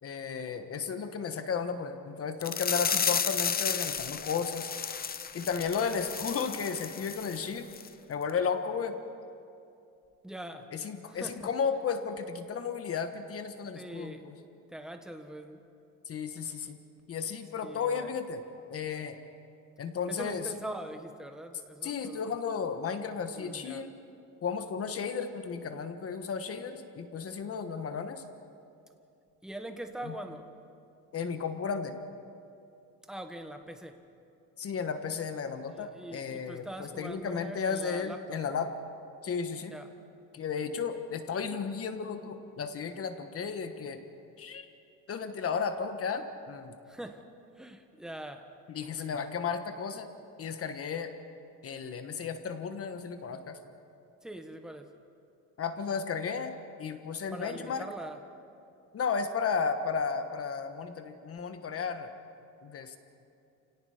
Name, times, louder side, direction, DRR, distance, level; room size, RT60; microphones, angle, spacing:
voice 1, 0.0-4.7 5.3-7.7 8.1-9.0 10.7-14.4 16.1-16.8 17.1-18.4 18.7-19.2 19.8-20.5 21.8-23.9 24.4-28.2 30.0-30.1 31.1-32.0 34.6-38.7 39.2-39.7 40.3-44.0 44.4-44.7 45.1-46.7 48.7-50.1 50.4-51.1 51.6-53.6 55.6-57.9 58.9-62.1 62.6-63.0, left 6 dB, 40° left, 8 dB, 1.3 m, -34 dB
sound 1, 2.4-7.4 7.7-7.9 8.3-8.4, left 7 dB, 25° left, 0.7 m, -33 dB
voice 2, 10.2-10.7 11.1-11.5 13.7-14.3 14.7-15.6 17.6-18.1 20.1-22.2 23.3-23.8 29.4-30.5 33.1-34.0 35.7-38.4 39.7-39.9 46.9-47.2 47.6-48.4 54.2-54.9 57.3-58.2, right 1 dB, ahead, 5 dB, 1.3 m, -42 dB
29.5 x 18.0 x 5.0 m, 2.6 s
cardioid pair, 140°, 34 cm